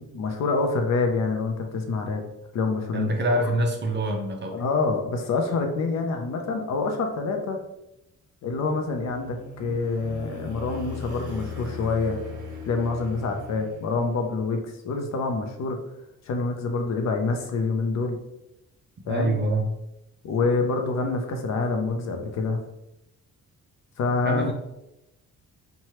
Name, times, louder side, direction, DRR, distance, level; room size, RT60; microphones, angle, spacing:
voice 1, 0.0-2.2 2.5-3.4 4.5-7.6 8.4-12.2 12.7-15.8 16.3-18.2 19.1-19.3 20.2-22.6 24.0-24.5, left 3 dB, 60° left, 4 dB, 0.6 m, -26 dB
voice 2, 2.9-4.6 19.1-19.7 24.3-24.5, right 1 dB, 35° right, 3 dB, 0.5 m, -25 dB
sound 1, 8.7-14.4, left 3 dB, 70° right, 0.7 m, -39 dB
3.1 x 2.2 x 2.9 m, 0.87 s
cardioid pair, 105°, 31 cm